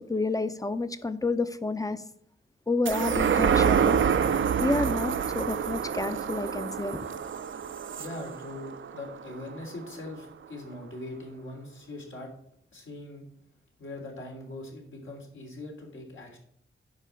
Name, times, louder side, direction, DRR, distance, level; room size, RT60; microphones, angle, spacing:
voice 1, 0.0-2.0 2.7-4.0 4.6-7.0, left 3 dB, 15° left, 0.7 m, -29 dB
sound 1, 2.9-9.6 10.1-10.2, right 7 dB, 75° right, 0.6 m, -27 dB
voice 2, 8.0-12.3 12.7-13.2 13.8-16.4, left 2 dB, 75° left, 3.2 m, -41 dB
9.8 x 5.0 x 6.9 m
wide cardioid pair, 100°, 21 cm